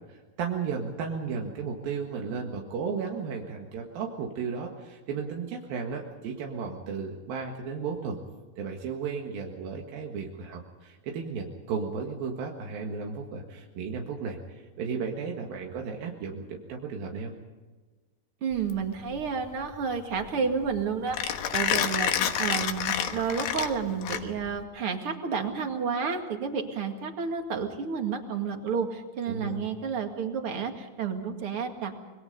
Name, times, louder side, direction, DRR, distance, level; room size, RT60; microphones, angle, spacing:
voice 1, 0.1-8.2 8.6-17.3 29.3-29.6, right 5 dB, 90° right, 1 dB, 3.6 m, -34 dB
voice 2, 18.4-32.1, right 6 dB, 45° right, 4 dB, 2.6 m, -31 dB
Mechanisms, 18.5-24.6, left 10 dB, 75° left, 2.9 m, -30 dB
26.5 x 22.0 x 5.4 m, 1.3 s
omnidirectional pair, 4.0 m